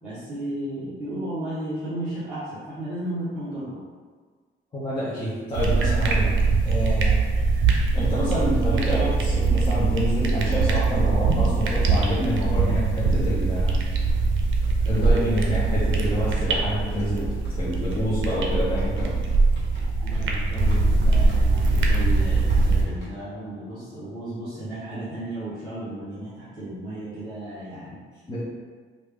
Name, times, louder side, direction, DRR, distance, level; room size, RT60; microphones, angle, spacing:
voice 1, 0.0-3.8 19.8-28.2, right 1 dB, 5° right, -16 dB, 1.1 m, -34 dB
voice 2, 4.7-6.4 6.6-7.2 7.9-13.8 14.8-19.1 28.3-28.4, equal, 20° left, -9 dB, 0.6 m, -27 dB
sound 1, 5.5-22.8, right 3 dB, 70° right, 0.5 m, -22 dB
sound 2, 13.1-23.1, equal, 60° left, 1.1 m, -46 dB
3.2 x 2.5 x 3.4 m, 1.5 s
cardioid pair, 160°, 21 cm